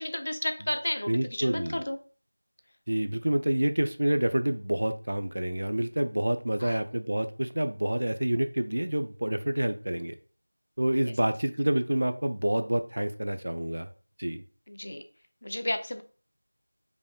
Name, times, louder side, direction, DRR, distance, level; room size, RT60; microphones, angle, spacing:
voice 1, 0.0-2.0 6.6-6.8 14.7-15.1 15.4-16.0, left 1 dB, 35° left, 8 dB, 0.4 m, -32 dB
voice 2, 1.1-1.8 2.9-10.1 10.8-13.9 14.2-14.4, right 1 dB, 40° right, 9 dB, 0.4 m, -28 dB
5.1 x 2.7 x 3.7 m, 0.39 s
figure-of-eight pair, 175°, 0 cm